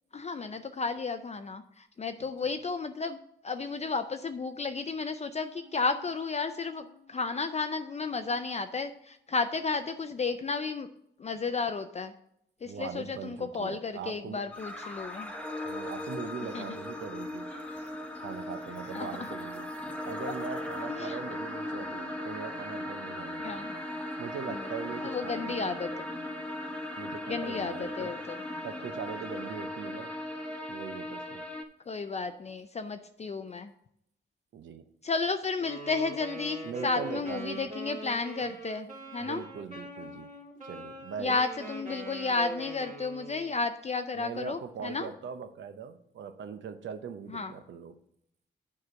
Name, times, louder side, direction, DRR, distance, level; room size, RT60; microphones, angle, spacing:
voice 1, 0.1-3.2 3.4-10.9 11.2-12.1 12.6-15.3 16.5-16.6 18.9-19.3 20.8-21.2 21.8-21.9 23.4-23.7 24.5-24.6 25.0-25.9 27.3-28.4 31.9-33.7 35.0-38.9 39.1-39.4 41.2-45.1 47.3-47.5, left 4 dB, 35° left, 8 dB, 0.5 m, -33 dB
sound 1, 5.5-9.3 9.6-9.7, right 5 dB, 10° right, 2.0 m, -59 dB
voice 2, 12.6-14.5 15.6-17.5 18.2-19.7 20.0-23.7 24.2-25.9 27.0-28.2 28.6-30.1 30.7-31.4 34.5-34.8 36.6-37.7 38.4-38.6 39.2-40.3 40.7-41.4 44.1-47.9, right 7 dB, 85° right, 10 dB, 0.7 m, -41 dB
sound 2, 14.5-31.6, left 1 dB, 5° left, 1.0 m, -38 dB
Wind instrument woodwind instrument, 35.5-43.5, right 1 dB, 40° right, 2.3 m, -42 dB
7.3 x 4.9 x 6.2 m, 0.73 s
cardioid pair, 80°, 19 cm